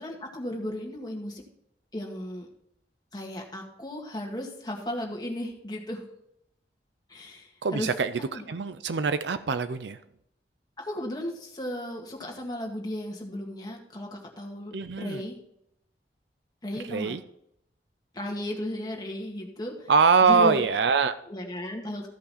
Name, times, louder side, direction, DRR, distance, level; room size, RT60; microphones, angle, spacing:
voice 1, 0.0-1.4 1.9-2.5 3.1-6.0 7.1-7.9 8.3-8.5 10.8-15.3 16.6-17.1 18.1-19.9 20.2-20.6 21.3-22.1, left 1 dB, 25° left, 0 dB, 1.9 m, -35 dB
voice 2, 7.6-10.0 14.7-15.2 16.9-17.2 19.9-21.2, right 5 dB, 80° right, 12 dB, 0.5 m, -23 dB
14.5 x 5.6 x 4.2 m, 0.75 s
head